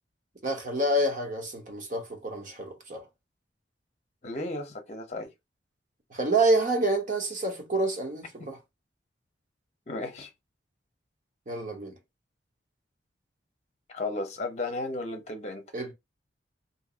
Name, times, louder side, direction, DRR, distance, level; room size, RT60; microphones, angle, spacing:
voice 1, 0.4-3.0 6.1-8.6 11.5-11.9 15.7-15.9, right 2 dB, 45° right, 1.0 m, -28 dB
voice 2, 4.2-5.3 9.9-10.3 13.9-15.6, left 2 dB, 35° left, 0.8 m, -34 dB
2.8 x 2.5 x 3.8 m
head